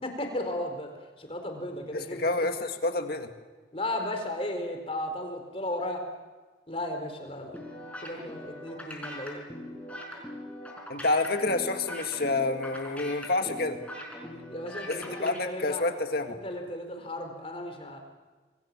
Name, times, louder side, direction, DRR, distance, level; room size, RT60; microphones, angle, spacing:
voice 1, 0.0-0.9 1.2-2.5 3.7-6.1 6.7-7.5 8.0-9.4 14.3-15.8 16.3-18.0, left 1 dB, 30° left, 4 dB, 4.1 m, -35 dB
voice 2, 1.9-3.3 10.9-13.8 14.9-16.4, left 2 dB, 55° left, 6 dB, 2.0 m, -28 dB
sound 1, 7.5-15.4, left 1 dB, 5° left, 5.1 m, -41 dB
27.0 x 23.0 x 7.4 m, 1.3 s
head